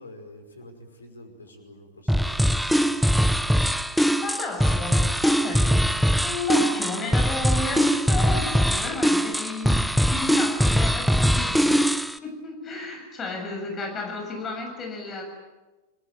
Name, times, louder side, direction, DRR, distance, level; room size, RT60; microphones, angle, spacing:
voice 1, 0.0-3.5, left 1 dB, 75° left, 6 dB, 5.5 m, -48 dB
sound 1, 2.1-12.2, equal, ahead, 0.9 m, -22 dB
voice 2, 3.8-5.9 6.2-11.9 12.2-15.2, left 3 dB, 25° left, 3 dB, 7.4 m, -32 dB
29.5 x 21.5 x 9.1 m, 1.2 s
figure-of-eight pair, 90°, 0 cm